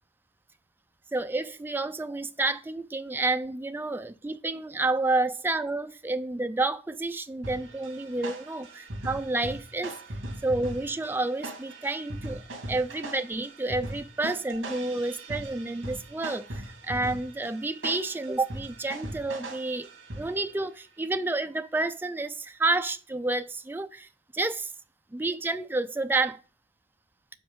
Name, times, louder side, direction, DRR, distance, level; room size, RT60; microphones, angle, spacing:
voice 1, 1.1-10.0 10.4-19.9 20.2-24.7 25.1-26.4, right 2 dB, 10° right, 0.3 m, -30 dB
sound 1, 7.4-20.6, right 1 dB, 65° right, 2.1 m, -40 dB
7.8 x 4.4 x 3.6 m
head